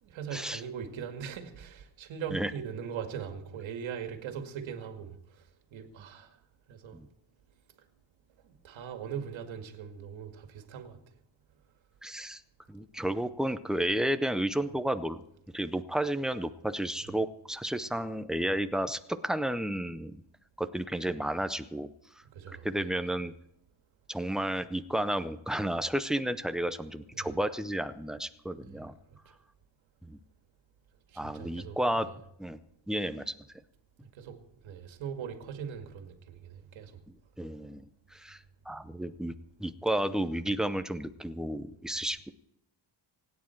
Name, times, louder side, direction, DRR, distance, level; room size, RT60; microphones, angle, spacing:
voice 1, 0.0-5.2 5.7-6.4 6.7-7.0 8.4-11.0 17.0-17.1 22.2-22.9 27.1-27.3 28.6-28.8 29.1-29.2 31.1-32.0 34.1-37.0, right 7 dB, 85° right, 2.2 m, -41 dB
voice 2, 12.0-12.4 12.7-15.2 15.5-20.2 20.6-21.9 22.5-23.3 24.1-29.0 30.0-30.2 31.2-32.1 32.4-32.6 32.9-33.3 37.4-37.9 38.1-38.4 38.7-39.3 39.6-42.3, right 1 dB, ahead, 0.5 m, -32 dB
25.5 x 9.7 x 4.5 m
cardioid pair, 175°, 45 cm